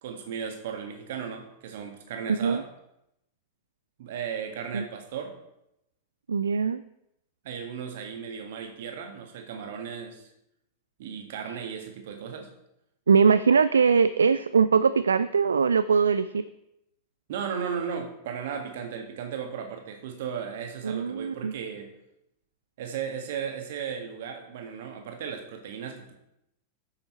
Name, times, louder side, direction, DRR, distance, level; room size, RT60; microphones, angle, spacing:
voice 1, 0.0-2.7 4.0-5.4 7.4-10.3 11.0-12.5 17.3-21.9 22.8-26.1, right 7 dB, 55° right, 5 dB, 1.7 m, -35 dB
voice 2, 2.3-2.6 4.7-4.8 6.3-6.8 11.5-11.6 13.1-16.4 20.8-21.5, right 5 dB, 70° right, 14 dB, 0.3 m, -22 dB
8.8 x 7.6 x 4.5 m, 0.84 s
figure-of-eight pair, 90°, 0 cm